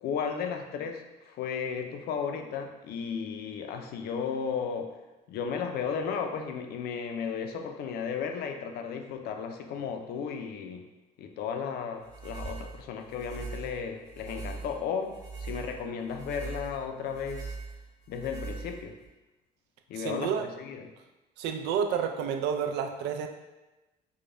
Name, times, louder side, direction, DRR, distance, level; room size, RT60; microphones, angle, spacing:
voice 1, 0.0-5.0 5.3-10.9 11.2-17.6 18.1-19.0 19.9-20.9, left 6 dB, 70° left, 5 dB, 0.5 m, -34 dB
sound 1, 12.0-19.1, right 4 dB, 20° right, 1.1 m, -41 dB
voice 2, 20.0-20.5 21.4-23.3, right 7 dB, 85° right, 5 dB, 0.4 m, -30 dB
4.8 x 2.2 x 2.5 m, 1.1 s
cardioid pair, 110°, 17 cm